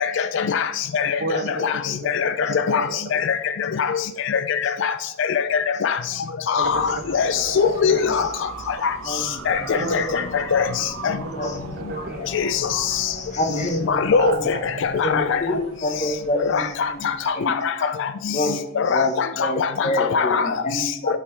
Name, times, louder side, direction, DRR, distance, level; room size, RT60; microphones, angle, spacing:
voice 1, 0.0-1.2 1.6-1.7 2.1-2.3 2.7-3.4 3.8-4.9 5.2-6.0 6.5-8.3 8.8-8.9 9.5-11.1 12.3-12.6 12.9-13.1 13.9-14.6 14.8-15.4 16.5-16.6 17.3-18.4 18.8-20.5, left 6 dB, 60° left, 11 dB, 0.4 m, -22 dB
voice 2, 1.2-2.1 2.4-3.2 6.5-7.0 7.4-8.1 9.7-10.3 10.8-12.2 13.5-13.7 14.1-14.6, right 2 dB, 50° right, 6 dB, 1.0 m, -31 dB
sound 1, 6.6-17.5, right 4 dB, 85° right, 0.8 m, -40 dB
voice 3, 9.0-9.6 11.3-11.6 11.9-12.1 12.7-12.9 13.1-14.0 14.3-14.5 15.0-15.5 15.8-17.9 18.3-18.6 18.9-21.2, left 1 dB, 35° left, 5 dB, 1.1 m, -27 dB
sound 2, 9.3-15.2, left 2 dB, 80° left, 1.7 m, -40 dB
12.0 x 5.5 x 3.3 m, 0.84 s
head